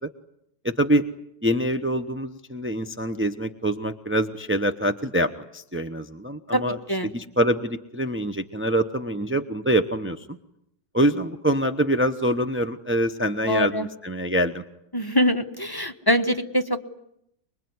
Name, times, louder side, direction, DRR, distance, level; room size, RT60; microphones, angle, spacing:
voice 1, 0.6-1.1 1.4-6.8 7.0-10.4 10.9-14.6, right 1 dB, 15° right, 6 dB, 0.4 m, -25 dB
voice 2, 13.5-13.9 14.9-16.8, equal, 15° left, 6 dB, 1.0 m, -23 dB
25.0 x 23.0 x 9.5 m, 0.76 s
omnidirectional pair, 2.0 m